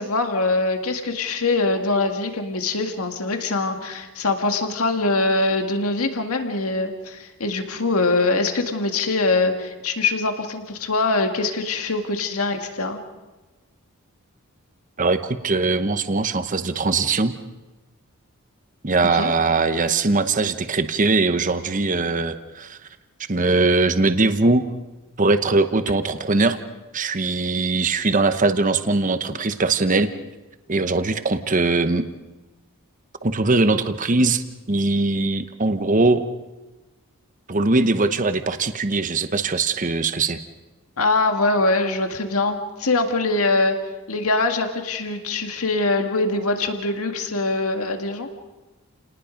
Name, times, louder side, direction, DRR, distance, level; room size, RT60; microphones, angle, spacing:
voice 1, 0.0-13.0 19.1-19.3 41.0-43.8 44.1-48.3, left 3 dB, 75° left, 5 dB, 2.0 m, -23 dB
voice 2, 15.0-17.4 18.8-22.8 23.3-24.6 25.2-26.6 26.9-30.1 30.7-32.1 33.2-36.3 37.5-40.4, right 3 dB, 35° right, 10 dB, 1.0 m, -21 dB
29.5 x 19.0 x 5.2 m, 1.2 s
head